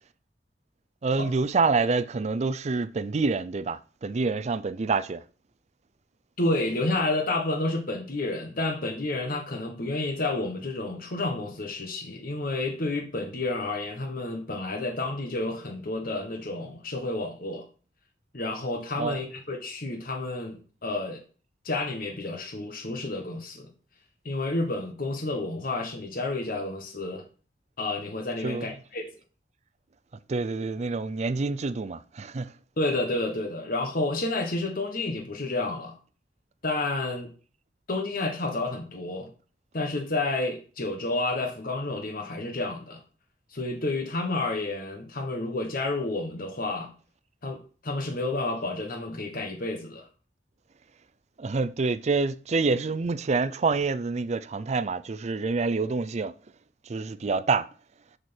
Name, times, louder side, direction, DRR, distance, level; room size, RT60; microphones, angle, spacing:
voice 1, 1.0-5.2 19.0-19.2 28.4-28.8 30.3-32.5 51.4-56.3 56.9-57.7, right 4 dB, 40° right, 0.4 m, -27 dB
voice 2, 6.4-17.6 18.3-21.2 21.6-23.7 24.2-27.2 27.8-29.0 32.8-35.9 36.6-37.3 37.9-39.3 39.7-43.0 43.5-46.9 47.4-50.1, left 2 dB, 55° left, 1.4 m, -30 dB
6.7 x 6.5 x 4.4 m
head